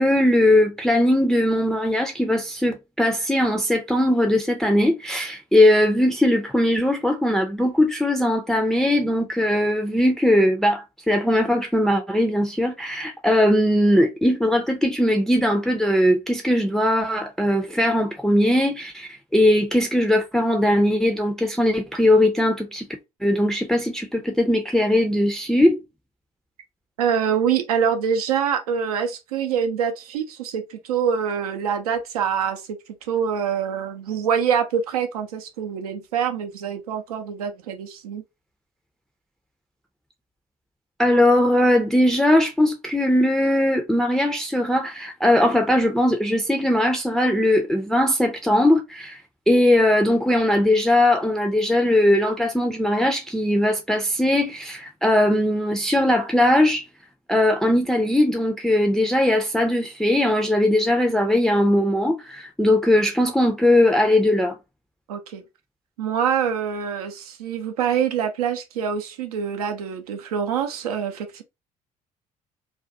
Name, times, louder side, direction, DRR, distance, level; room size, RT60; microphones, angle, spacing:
voice 1, 0.0-22.9 23.2-25.8 41.0-49.2 49.5-56.8 57.3-64.6, left 1 dB, ahead, 0.5 m, -20 dB
voice 2, 27.0-38.2 65.1-65.4 66.0-71.4, right 7 dB, 75° right, 0.6 m, -25 dB
2.4 x 2.2 x 2.5 m
figure-of-eight pair, 50°, 19 cm